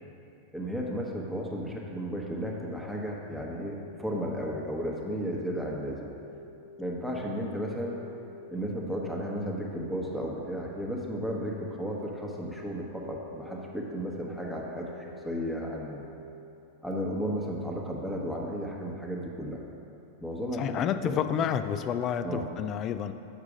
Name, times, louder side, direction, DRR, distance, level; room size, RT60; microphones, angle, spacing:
voice 1, 0.5-6.1 6.8-8.0 8.5-16.0 16.8-19.6 20.2-21.1 22.2-22.5, equal, ahead, -2 dB, 1.2 m, -34 dB
sound 1, 6.1-16.1, left 3 dB, 80° right, 1.2 m, -48 dB
voice 2, 20.6-23.1, left 8 dB, 35° left, 10 dB, 0.4 m, -29 dB
7.3 x 4.9 x 5.0 m, 2.7 s
hypercardioid pair, 95°, 0 cm